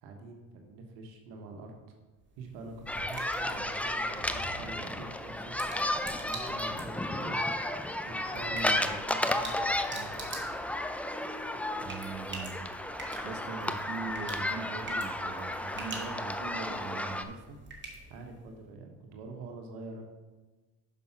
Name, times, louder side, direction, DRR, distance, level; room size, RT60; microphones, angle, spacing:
voice 1, 0.0-1.7 2.4-5.4 6.2-10.5 18.1-20.0, right 2 dB, 90° right, 2 dB, 1.3 m, -45 dB
sound 1, 2.2-18.6, right 2 dB, 25° right, 2.0 m, -47 dB
sound 2, 2.9-17.2, left 1 dB, 5° left, 0.4 m, -33 dB
voice 2, 11.8-12.7 13.2-17.6, right 5 dB, 60° right, 3 dB, 1.2 m, -41 dB
6.3 x 5.4 x 5.8 m, 1.2 s
supercardioid pair, 75°, 45 cm